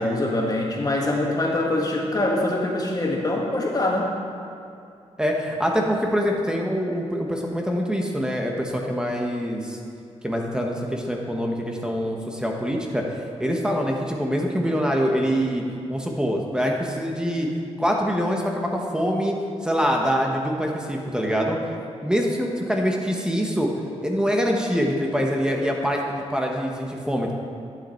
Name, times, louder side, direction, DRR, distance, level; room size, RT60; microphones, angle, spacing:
voice 1, 0.0-4.1, left 1 dB, 35° left, -1 dB, 1.9 m, -24 dB
voice 2, 5.2-9.8 10.2-13.0 13.4-17.5 17.8-19.4 19.6-21.6 22.0-23.7 24.0-27.3, equal, 5° right, 0 dB, 1.3 m, -24 dB
11.0 x 8.0 x 4.5 m, 2.6 s
cardioid pair, 85°, 12 cm